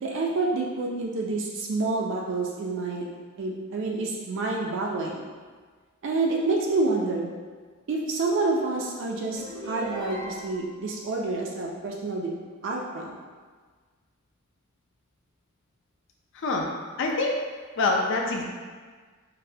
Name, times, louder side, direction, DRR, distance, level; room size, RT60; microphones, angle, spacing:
voice 1, 0.0-3.1 3.4-5.2 6.0-7.3 7.9-12.3 12.6-13.1, right 3 dB, 60° right, -1 dB, 0.4 m, -28 dB
sound 1, 9.3-10.8, right 1 dB, 20° left, 0.6 m, -38 dB
voice 2, 16.3-16.7 17.0-17.4 17.8-18.4, left 3 dB, 60° left, 1 dB, 0.4 m, -25 dB
3.9 x 2.1 x 2.7 m, 1.5 s
head